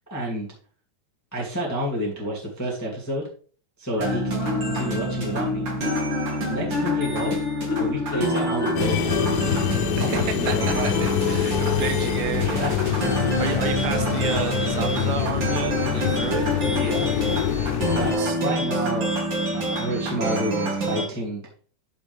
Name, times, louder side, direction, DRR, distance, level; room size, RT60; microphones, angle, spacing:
voice 1, 0.1-0.5 1.3-3.2 3.8-5.7 6.5-7.4 7.7-9.7 10.0-10.9 11.3-11.4 12.3-12.7 13.0-13.1 16.6-17.4 17.9-19.2 19.5-21.4, right 1 dB, 10° left, -4 dB, 0.7 m, -30 dB
Marimba xylophone, 4.0-4.9 5.4-10.9, left 4 dB, 45° left, 1.8 m, -32 dB
sound 1, 4.0-21.1, right 1 dB, 50° right, 1.3 m, -27 dB
sound 2, 8.8-18.1, left 12 dB, 80° left, 3.1 m, -26 dB
voice 2, 10.0-12.6 13.4-16.5 17.9-18.4, right 8 dB, 80° right, 8 dB, 2.9 m, -31 dB
10.5 x 5.3 x 3.5 m, 0.42 s
omnidirectional pair, 5.1 m